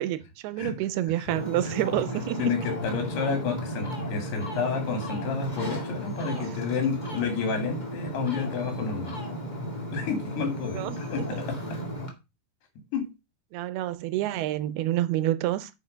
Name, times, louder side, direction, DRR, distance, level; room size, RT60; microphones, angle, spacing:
voice 1, 0.0-2.5 10.8-11.3 13.5-15.7, right 14 dB, 80° right, 2.7 m, -28 dB
Ocean, 1.3-12.1, equal, 20° left, 1.1 m, -34 dB
voice 2, 2.4-9.1 9.9-11.8 12.9-13.1, left 5 dB, 80° left, 4.5 m, -30 dB
9.8 x 5.1 x 5.1 m
omnidirectional pair, 4.6 m